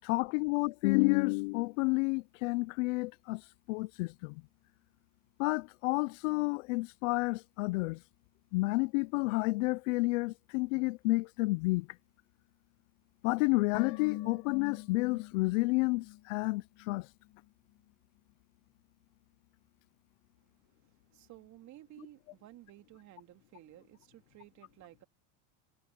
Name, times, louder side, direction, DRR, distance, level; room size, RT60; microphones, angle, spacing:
voice 1, 0.0-3.4 3.7-4.4 5.4-8.0 8.5-11.9 13.2-17.1, left 25 dB, 75° left, 0.7 m, -30 dB
sound 1, 13.7-17.1 17.3-17.4, left 16 dB, 50° left, 1.2 m, -43 dB
voice 2, 21.1-25.0, right 15 dB, 45° right, 3.1 m, -54 dB
supercardioid pair, 125°, 38 cm